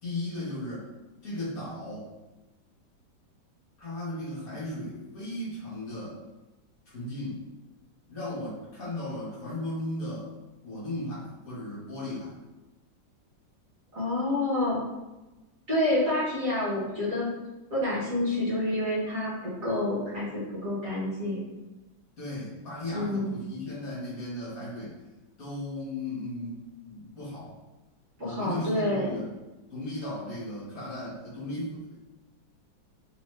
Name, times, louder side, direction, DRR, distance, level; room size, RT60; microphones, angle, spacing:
voice 1, 0.0-0.9 1.2-2.1 3.8-6.2 6.9-7.4 8.1-10.3 10.6-12.4 22.2-25.0 25.4-27.5 28.2-29.3 29.7-31.9, left 1 dB, 50° left, -9 dB, 1.7 m, -36 dB
voice 2, 13.9-14.8 15.7-17.3 17.7-21.4 22.9-23.3 28.2-29.1, left 1 dB, 45° right, -9 dB, 1.8 m, -28 dB
3.8 x 3.0 x 3.2 m, 1.1 s
omnidirectional pair, 2.1 m